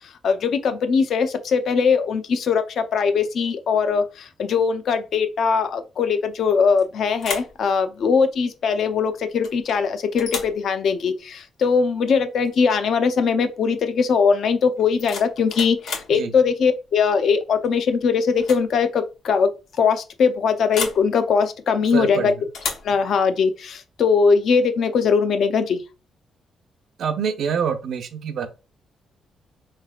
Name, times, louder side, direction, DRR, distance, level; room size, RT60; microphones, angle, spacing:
voice 1, 0.2-19.5 19.8-22.3 22.8-25.8, left 5 dB, 60° left, 0.6 m, -21 dB
sound 1, 6.5-6.8 7.2-7.6 9.4-9.8 10.2-10.6 12.5-12.6 13.0-13.3 14.8-16.2 17.6-17.9 18.3-18.7 18.9-19.0 20.7-21.1 22.5-22.9, left 5 dB, 80° left, 1.1 m, -32 dB
voice 2, 21.9-22.3 27.0-28.5, right 7 dB, 60° right, 0.7 m, -26 dB
4.1 x 3.2 x 2.4 m
cardioid pair, 135°, 0 cm